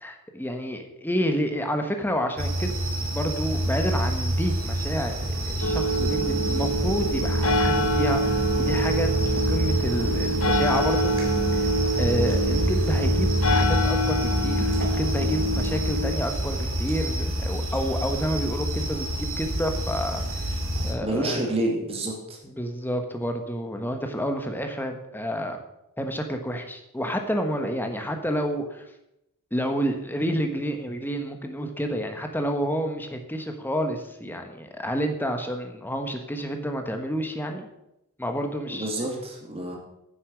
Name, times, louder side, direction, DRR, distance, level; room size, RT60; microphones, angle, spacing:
voice 1, 0.0-2.8 3.1-11.7 12.0-20.5 20.8-21.5 22.4-25.6 26.0-28.8 29.5-37.7 38.2-38.9, equal, 10° left, 5 dB, 1.2 m, -29 dB
sound 1, 2.4-20.9, right 1 dB, 70° right, 2.6 m, -27 dB
sound 2, 5.6-16.1, equal, 70° left, 1.0 m, -26 dB
voice 2, 21.0-22.4 38.7-39.8, right 1 dB, 30° right, -1 dB, 2.5 m, -28 dB
9.7 x 7.2 x 6.2 m, 0.87 s
head